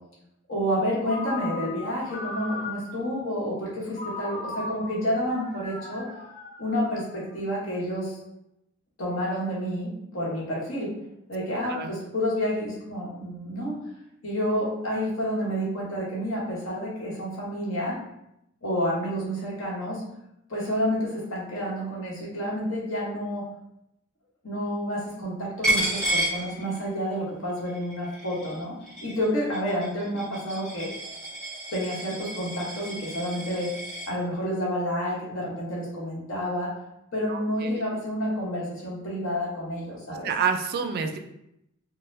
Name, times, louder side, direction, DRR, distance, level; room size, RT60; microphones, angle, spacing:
voice 1, 0.5-6.1 6.6-8.2 9.0-10.9 11.3-13.8 14.2-18.0 18.6-20.0 20.5-23.5 24.4-28.8 29.0-30.9 31.7-33.7 34.1-36.7 37.1-40.3, equal, 65° left, -5 dB, 1.0 m, -29 dB
Ringtone, 1.0-3.1 3.9-7.3, left 3 dB, 35° left, 0.5 m, -38 dB
Coin (dropping), 25.6-27.1 27.5-34.1, right 1 dB, 5° left, 1.3 m, -31 dB
voice 2, 37.3-37.9 40.1-41.2, right 6 dB, 50° right, 7 dB, 0.3 m, -29 dB
4.0 x 2.1 x 2.6 m, 0.82 s
head